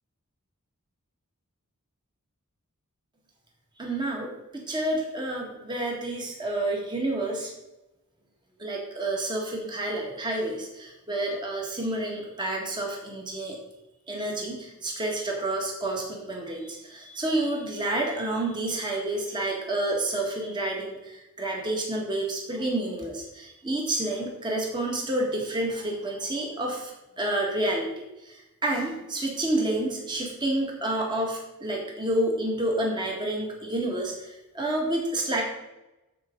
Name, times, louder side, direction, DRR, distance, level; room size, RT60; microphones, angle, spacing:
voice 1, 3.8-7.5 8.6-13.6 14.1-26.9 27.2-35.4, right 1 dB, 20° right, -1 dB, 1.7 m, -29 dB
13.5 x 4.9 x 3.9 m, 0.97 s
head